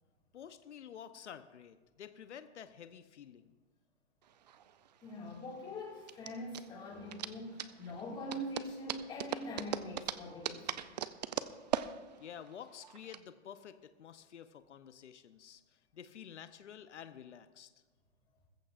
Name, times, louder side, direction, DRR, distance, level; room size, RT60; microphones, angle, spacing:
voice 1, 0.3-3.5 12.2-15.6 15.9-17.7, left 8 dB, 75° left, 10 dB, 0.9 m, -50 dB
sound 1, 4.3-13.2, right 9 dB, 40° right, 0.5 m, -40 dB
voice 2, 5.0-10.8, left 1 dB, 15° left, -2 dB, 2.2 m, -43 dB
20.5 x 15.0 x 2.5 m, 1.3 s
hypercardioid pair, 155°, 35 cm